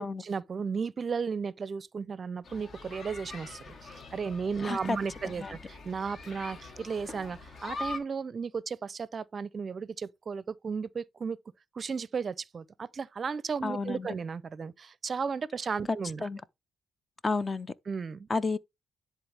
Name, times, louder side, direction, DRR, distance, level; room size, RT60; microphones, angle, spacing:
voice 1, 0.0-11.4 11.7-16.3 17.9-18.3, right 5 dB, 40° right, 0.5 m, -35 dB
sound 1, 2.4-8.0, left 3 dB, 50° left, 1.4 m, -43 dB
voice 2, 4.6-5.0 5.4-5.5 13.6-14.1 16.2-16.4 17.2-17.7 18.3-18.6, left 3 dB, 25° left, 0.5 m, -31 dB
10.5 x 3.8 x 3.4 m
cardioid pair, 90°, 0 cm